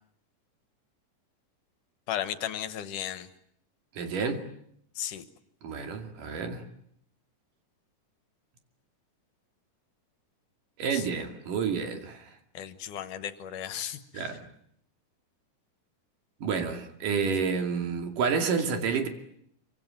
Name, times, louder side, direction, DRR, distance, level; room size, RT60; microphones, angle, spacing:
voice 1, 2.1-3.3 5.0-5.3 10.9-11.2 12.5-14.3, left 10 dB, 75° left, 2.7 m, -35 dB
voice 2, 3.9-4.4 5.6-6.6 10.8-12.3 14.1-14.5 16.4-19.1, right 5 dB, 75° right, 4.1 m, -29 dB
25.5 x 24.5 x 9.0 m
omnidirectional pair, 3.8 m